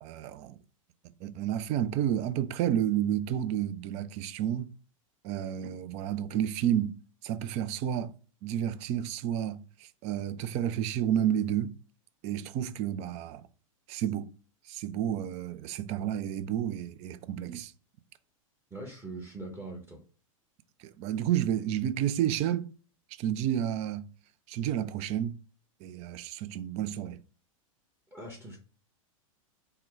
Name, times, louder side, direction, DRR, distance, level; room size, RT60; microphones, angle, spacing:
voice 1, 0.0-0.6 1.2-4.7 5.2-6.9 7.2-8.1 8.4-11.7 12.2-13.4 13.9-14.3 14.7-17.7 21.0-22.7 23.2-24.0 24.5-25.4 25.8-27.2, right 10 dB, 40° right, 0.4 m, -30 dB
voice 2, 18.7-20.0 28.1-28.6, right 2 dB, 10° right, 0.9 m, -42 dB
4.3 x 2.2 x 3.8 m
hypercardioid pair, 100°, 18 cm